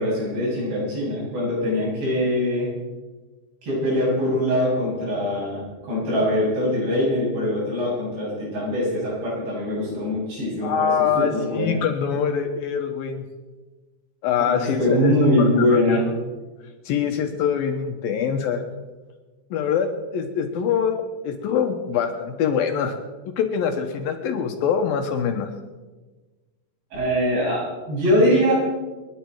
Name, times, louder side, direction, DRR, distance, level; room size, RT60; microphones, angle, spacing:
voice 1, 0.0-2.7 3.6-11.8 14.4-16.0 26.9-28.5, left 1 dB, 85° right, -6 dB, 10.0 m, -22 dB
voice 2, 10.6-13.2 14.2-16.0 16.9-18.6 19.5-22.9 23.3-25.5, left 7 dB, 70° left, 5 dB, 2.6 m, -24 dB
29.0 x 10.5 x 4.7 m, 1.3 s
omnidirectional pair, 4.9 m